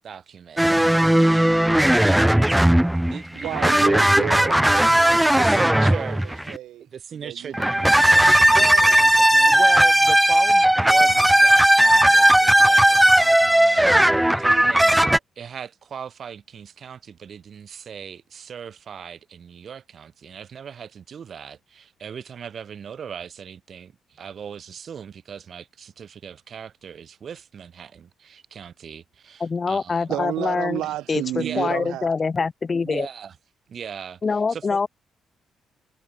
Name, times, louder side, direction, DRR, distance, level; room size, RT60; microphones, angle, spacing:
voice 1, 0.0-1.6 3.1-3.5 5.4-6.2 6.8-7.9 8.1-8.9 9.5-30.1 31.3-31.7 32.8-33.4 33.7-34.8, right 7 dB, 50° right, 2.5 m, -38 dB
sound 1, 0.6-6.6 7.5-15.2, right 1 dB, 5° right, 0.4 m, -17 dB
voice 2, 3.4-6.9 7.1-9.6 11.0-11.1 30.1-32.1, right 14 dB, 85° right, 5.4 m, -33 dB
voice 3, 29.4-30.8 31.1-33.1 34.2-34.9, left 4 dB, 35° left, 1.3 m, -24 dB
cardioid pair, 90°, 0 cm